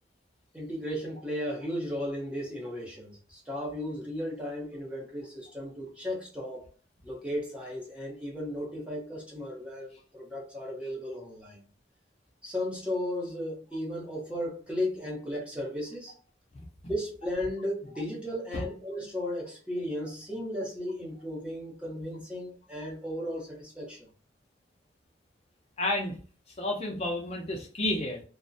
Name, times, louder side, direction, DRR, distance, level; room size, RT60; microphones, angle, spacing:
voice 1, 0.5-6.6 7.0-11.6 12.4-16.1 16.9-24.1, left 1 dB, 5° right, 0.7 m, -35 dB
voice 2, 25.8-26.2 26.5-28.2, left 1 dB, 35° left, 0.5 m, -31 dB
2.4 x 2.1 x 2.6 m
head